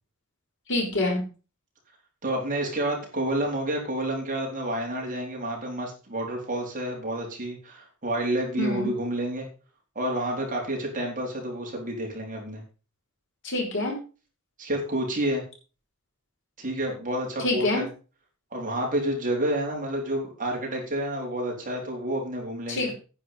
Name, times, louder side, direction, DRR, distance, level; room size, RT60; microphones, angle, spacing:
voice 1, 0.7-1.2 8.6-8.9 13.4-13.9 17.4-17.8 22.7-22.9, left 2 dB, 60° left, 0 dB, 5.1 m, -26 dB
voice 2, 2.2-9.5 10.0-12.6 14.6-15.4 16.6-17.9 18.5-22.9, right 1 dB, 40° right, -1 dB, 4.1 m, -29 dB
10.0 x 9.1 x 5.6 m, 0.36 s
head